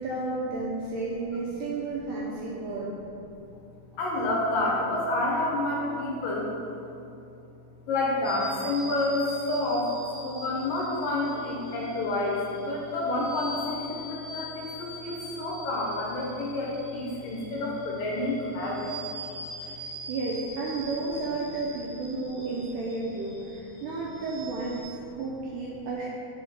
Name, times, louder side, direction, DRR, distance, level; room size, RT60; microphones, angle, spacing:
voice 1, 0.0-2.9 20.1-26.1, right 3 dB, 80° right, -5 dB, 1.9 m, -32 dB
voice 2, 4.0-6.5 7.9-9.9 10.2-18.9 19.2-19.7, left 2 dB, 80° left, -3 dB, 2.1 m, -29 dB
sound 1, 8.2-24.8, equal, 50° right, 1.3 m, -43 dB
5.5 x 3.6 x 5.4 m, 2.8 s
omnidirectional pair, 4.3 m